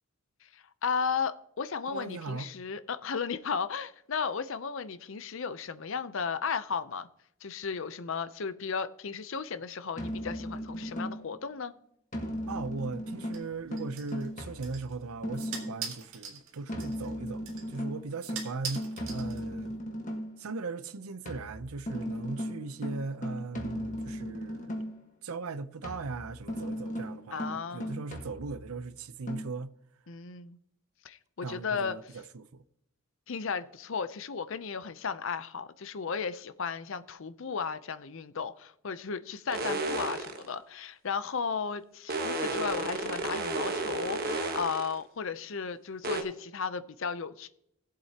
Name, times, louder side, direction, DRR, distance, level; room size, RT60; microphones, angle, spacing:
voice 1, 0.4-7.1 7.4-11.7 27.3-28.0 30.1-30.6 31.0-31.9 33.3-47.5, left 5 dB, 60° left, 0.6 m, -35 dB
voice 2, 1.9-2.5 12.5-19.8 20.4-24.7 25.2-29.7 31.4-32.6, right 4 dB, 80° right, 0.6 m, -39 dB
sound 1, 10.0-11.4 12.1-15.9 16.7-20.4 21.3-25.1 25.8-28.8 29.3-29.4, equal, 35° left, 1.4 m, -37 dB
sound 2, 13.3-19.8, right 6 dB, 60° right, 1.9 m, -44 dB
sound 3, 39.5-40.5 42.1-45.0 46.0-46.2, right 3 dB, 45° right, 1.2 m, -32 dB
18.0 x 7.6 x 2.9 m
head